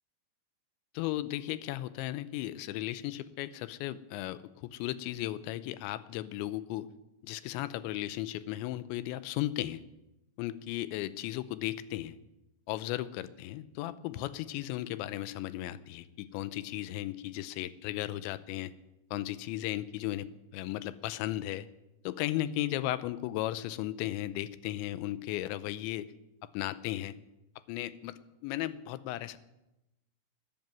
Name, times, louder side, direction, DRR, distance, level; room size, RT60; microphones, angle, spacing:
voice 1, 0.9-6.9 7.2-9.8 10.4-12.2 12.7-18.7 19.1-21.7 22.0-26.1 26.5-27.2 27.7-29.4, left 14 dB, 90° left, 15 dB, 3.0 m, -35 dB
13.0 x 11.0 x 9.1 m, 0.96 s
omnidirectional pair, 5.1 m